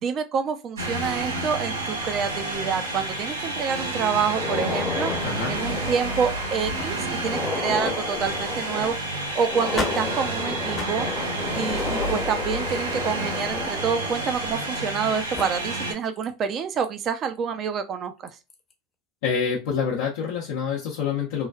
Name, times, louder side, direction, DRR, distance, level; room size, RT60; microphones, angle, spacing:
voice 1, 0.0-5.1 5.5-11.1 11.5-18.4, right 6 dB, 40° right, 0.5 m, -27 dB
sound 1, 0.8-15.9, right 2 dB, 90° right, 0.8 m, -30 dB
sound 2, 4.2-15.0 15.3-15.4 16.2-16.3 16.8-16.9 18.3-18.5, left 4 dB, 25° left, 0.8 m, -33 dB
voice 2, 5.2-5.5 19.2-21.5, left 6 dB, 70° left, 0.6 m, -26 dB
3.1 x 2.3 x 2.3 m
hypercardioid pair, 85°, 0 cm